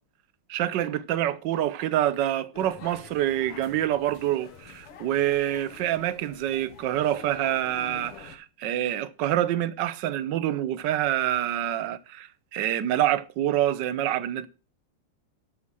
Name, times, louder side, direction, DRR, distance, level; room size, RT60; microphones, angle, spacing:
voice 1, 0.5-14.5, right 12 dB, 65° right, 1.3 m, -26 dB
sound 1, 2.5-8.4, left 6 dB, 85° left, 2.4 m, -46 dB
13.0 x 5.6 x 6.1 m
omnidirectional pair, 2.4 m